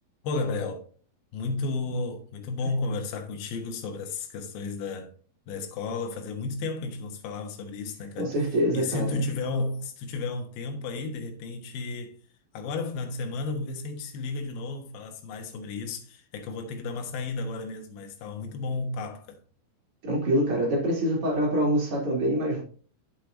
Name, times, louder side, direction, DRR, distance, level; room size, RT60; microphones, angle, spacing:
voice 1, 0.2-0.9 1.3-5.1 5.5-8.3 8.7-12.2 12.5-19.4, left 3 dB, 75° left, 2.9 m, -33 dB
voice 2, 8.2-9.2 20.0-22.6, equal, 40° right, 3.4 m, -25 dB
8.2 x 7.4 x 2.7 m
omnidirectional pair, 4.5 m